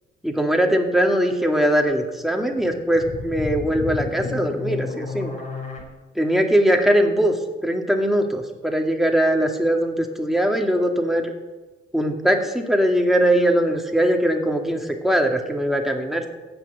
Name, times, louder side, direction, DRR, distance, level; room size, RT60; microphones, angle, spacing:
voice 1, 0.2-5.3 6.2-7.3 7.6-11.3 11.9-16.3, equal, ahead, 2 dB, 2.2 m, -21 dB
sound 1, 2.5-5.8, left 4 dB, 40° left, 4.8 m, -31 dB
14.5 x 6.2 x 9.1 m, 1.2 s
cardioid pair, 90°, 20 cm